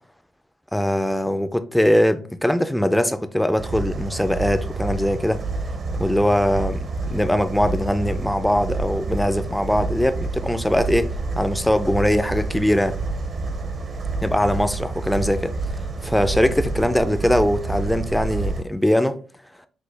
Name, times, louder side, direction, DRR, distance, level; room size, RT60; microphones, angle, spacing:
voice 1, 0.7-5.4 6.0-11.1 11.4-13.0 14.2-15.5 16.0-19.2, equal, 5° left, 0.3 m, -21 dB
sound 1, 3.6-18.6, right 3 dB, 40° right, 0.6 m, -28 dB
6.0 x 2.2 x 3.3 m
cardioid pair, 125°, 0 cm